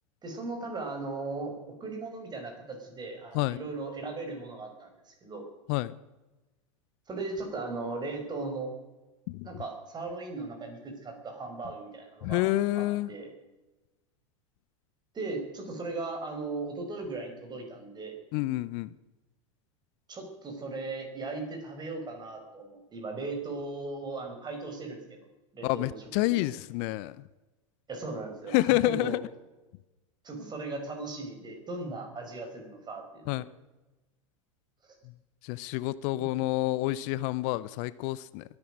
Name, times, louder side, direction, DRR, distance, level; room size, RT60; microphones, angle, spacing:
voice 1, 0.2-5.4 7.1-8.7 9.4-12.5 12.7-13.3 15.1-18.2 20.1-25.2 25.5-26.5 27.9-29.2 30.2-33.3 36.2-36.3, right 3 dB, 25° right, 4 dB, 5.1 m, -38 dB
voice 2, 12.2-13.1 18.3-18.9 25.6-27.2 28.5-29.2 33.3-33.4 35.4-38.4, left 18 dB, 50° left, 18 dB, 0.6 m, -28 dB
22.5 x 9.8 x 6.4 m, 1.1 s
hypercardioid pair, 90°, 17 cm